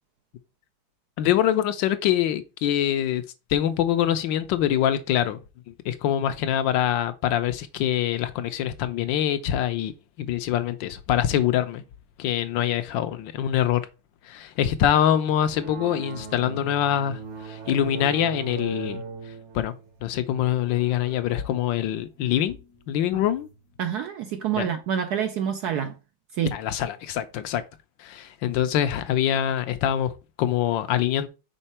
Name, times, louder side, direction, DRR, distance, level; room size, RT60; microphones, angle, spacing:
voice 1, 1.2-3.2 3.5-5.4 5.7-9.9 10.2-11.8 12.2-13.9 14.2-19.0 19.5-19.7 20.0-22.6 22.9-23.5 24.5-24.7 26.5-27.6 28.0-31.3, left 11 dB, 75° left, 1.3 m, -24 dB
sound 1, 15.5-23.6, right 4 dB, 45° right, 1.1 m, -39 dB
voice 2, 23.8-26.0 26.3-26.5, right 9 dB, 75° right, 0.9 m, -27 dB
5.4 x 4.4 x 4.3 m
omnidirectional pair, 2.1 m